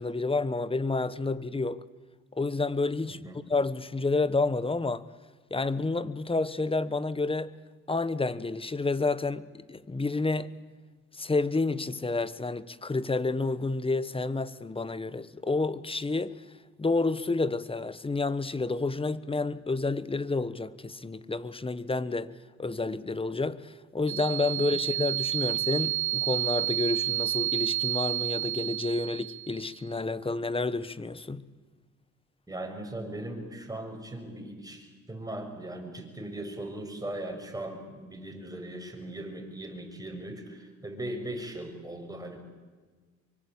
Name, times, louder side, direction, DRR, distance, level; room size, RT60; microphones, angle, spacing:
voice 1, 0.0-1.8 2.4-3.2 3.5-5.0 5.5-7.5 7.9-10.5 11.1-16.4 16.8-22.3 22.6-31.5, left 3 dB, 20° left, 1.2 m, -29 dB
sound 1, 24.1-29.7, right 17 dB, 80° right, 0.7 m, -30 dB
voice 2, 32.5-42.4, right 1 dB, 10° right, 6.3 m, -39 dB
25.0 x 24.0 x 8.8 m
cardioid pair, 90°, 30 cm